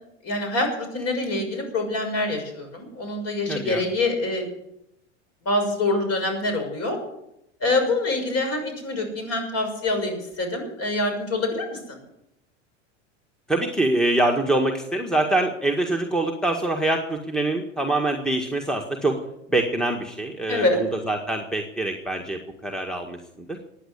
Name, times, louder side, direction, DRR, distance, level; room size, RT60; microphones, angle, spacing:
voice 1, 0.2-4.5 5.4-7.0 7.6-12.0 20.5-20.8, left 2 dB, 40° left, 5 dB, 6.5 m, -25 dB
voice 2, 3.5-3.8 13.5-19.2 19.5-23.6, right 2 dB, ahead, 4 dB, 1.7 m, -25 dB
15.0 x 9.8 x 8.3 m, 0.82 s
hypercardioid pair, 90°, 37 cm